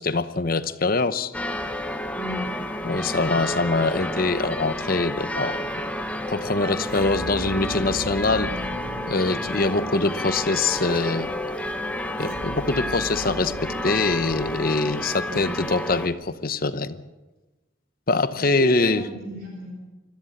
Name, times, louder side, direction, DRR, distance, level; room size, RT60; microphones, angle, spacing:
voice 1, 0.0-1.3 2.8-5.6 6.3-8.5 9.1-11.3 12.2-17.0 18.1-19.1, left 3 dB, 45° left, 13 dB, 0.9 m, -24 dB
sound 1, 1.3-16.1, left 1 dB, 5° left, 1.0 m, -30 dB
voice 2, 2.1-2.4 15.3-15.6 18.4-19.7, right 1 dB, 45° right, 0 dB, 4.4 m, -34 dB
sound 2, 6.9-10.2 12.2-15.5, equal, 80° right, 2.6 m, -38 dB
22.5 x 14.0 x 8.6 m, 1.1 s
head